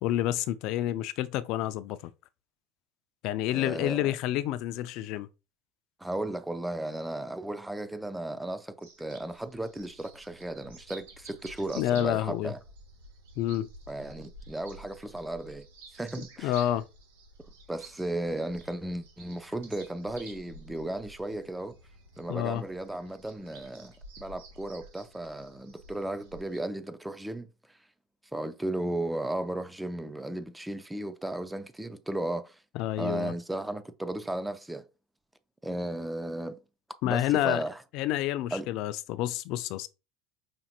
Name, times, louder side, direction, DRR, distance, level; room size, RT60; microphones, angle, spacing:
voice 1, 0.0-2.1 3.2-5.3 11.8-12.5 13.4-13.7 16.2-16.8 22.3-22.6 32.8-33.3 37.0-37.6 37.9-39.9, left 13 dB, 60° left, 0.3 m, -29 dB
voice 2, 3.5-4.1 6.0-12.6 13.9-15.7 15.9-16.6 17.7-21.8 22.2-27.8 28.3-32.6 33.0-34.8 35.6-36.6 37.0-37.8 38.5-38.7, right 1 dB, 5° right, 0.4 m, -35 dB
sound 1, 8.8-26.6, right 2 dB, 90° right, 1.1 m, -51 dB
5.1 x 2.9 x 2.3 m
supercardioid pair, 105°, 0 cm